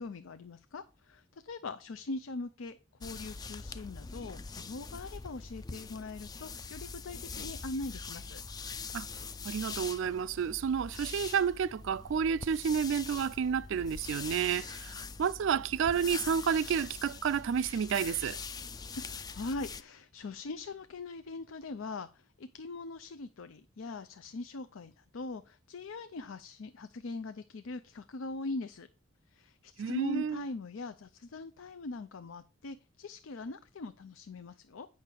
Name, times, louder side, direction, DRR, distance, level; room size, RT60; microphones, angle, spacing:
voice 1, 0.0-8.4 19.0-28.9 29.3-34.9, left 2 dB, 80° left, 0.5 m, -41 dB
sound 1, 3.0-19.8, left 5 dB, 20° left, 0.3 m, -43 dB
voice 2, 9.4-14.9 15.2-18.4 29.8-30.4, right 7 dB, 70° right, 0.3 m, -30 dB
8.6 x 5.8 x 4.4 m
head